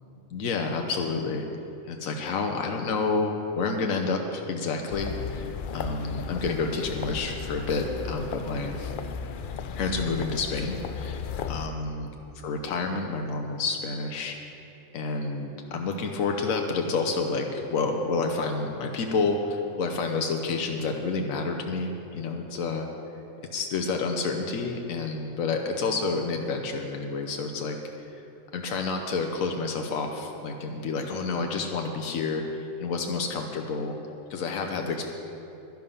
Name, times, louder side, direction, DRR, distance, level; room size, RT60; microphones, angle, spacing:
voice 1, 0.3-1.5 1.9-5.5 5.7-8.8 9.7-11.2 11.5-12.1 12.4-14.3 14.9-22.9 23.5-27.8 28.5-34.0 34.3-35.1, left 4 dB, 85° left, 3 dB, 1.2 m, -29 dB
sound 1, 4.9-11.7, left 6 dB, 65° left, 0.5 m, -35 dB
12.0 x 10.5 x 5.5 m, 2.9 s
omnidirectional pair, 1.4 m